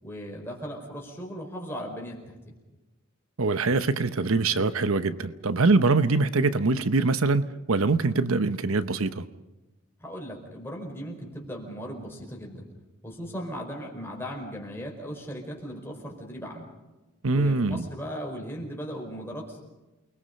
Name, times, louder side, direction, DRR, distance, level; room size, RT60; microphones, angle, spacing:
voice 1, 0.0-2.5 10.0-12.6 13.0-16.7 17.3-19.6, equal, 10° left, 4.8 m, -37 dB
voice 2, 3.4-9.2 17.2-17.9, right 3 dB, 80° right, 0.9 m, -23 dB
29.0 x 21.0 x 5.3 m
head